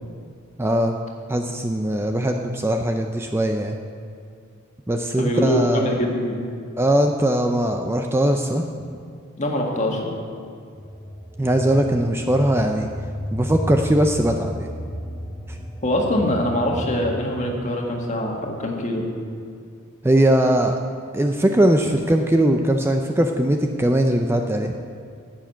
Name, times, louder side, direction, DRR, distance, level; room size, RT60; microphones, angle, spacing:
voice 1, 0.6-0.9 1.3-3.8 4.9-6.0 6.8-8.6 11.4-12.9 13.3-14.7 20.0-20.8 21.1-24.7, right 1 dB, 10° right, 4 dB, 0.5 m, -20 dB
voice 2, 5.2-6.4 9.4-10.1 15.8-19.0, left 1 dB, 35° left, 0 dB, 1.8 m, -23 dB
sound 1, 10.7-17.3, equal, 5° left, 0.9 m, -33 dB
10.5 x 7.3 x 8.9 m, 2.3 s
head